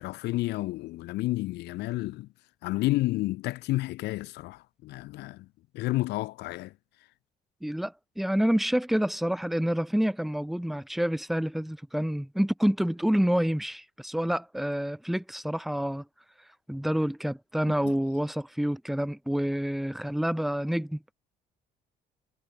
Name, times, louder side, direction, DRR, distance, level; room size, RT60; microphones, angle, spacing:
voice 1, 0.0-2.3 2.6-5.5 5.7-6.7 17.8-17.9, left 18 dB, 80° left, 1.1 m, -30 dB
voice 2, 7.6-16.0 16.7-21.1, equal, ahead, 0.5 m, -28 dB
cardioid pair, 110°, 17 cm